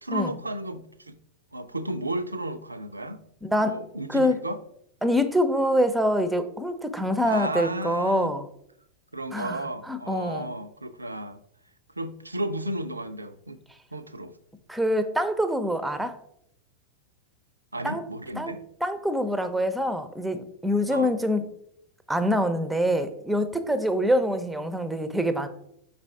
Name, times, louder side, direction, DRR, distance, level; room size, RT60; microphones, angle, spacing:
voice 1, 0.0-1.2 1.5-3.2 3.5-4.6 7.0-8.3 9.1-11.4 12.0-13.6 13.9-14.3 17.7-18.7 20.9-21.2, right 1 dB, 80° right, 10 dB, 0.4 m, -33 dB
voice 2, 5.0-8.5 9.3-9.6 9.9-10.5 14.7-16.2 17.8-18.0 18.4-18.5 18.8-21.4 22.1-25.5, equal, 5° right, 10 dB, 0.6 m, -25 dB
5.2 x 4.1 x 4.7 m, 0.72 s
figure-of-eight pair, 90°, 0 cm